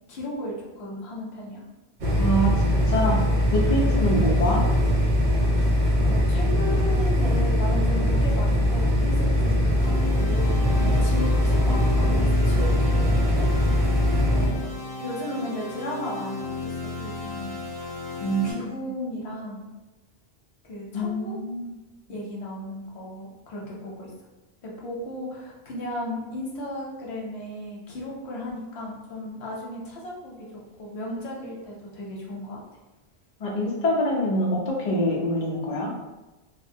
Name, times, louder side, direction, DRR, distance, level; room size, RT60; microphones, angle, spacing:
voice 1, 0.1-1.6 6.0-13.5 14.3-14.7 15.0-17.6 18.4-19.7 20.6-21.3 22.1-24.1 24.6-30.5 30.8-32.6, left 1 dB, 80° left, -3 dB, 0.9 m, -35 dB
sound 1, 2.0-14.5, equal, 55° right, 0.6 m, -21 dB
voice 2, 2.2-3.2 3.5-4.6 18.2-18.8 20.9-21.7 33.4-35.9, equal, 50° left, -3 dB, 0.6 m, -25 dB
sound 2, 9.8-18.5, left 3 dB, 5° right, 1.0 m, -35 dB
2.7 x 2.1 x 2.6 m, 1.1 s
omnidirectional pair, 1.1 m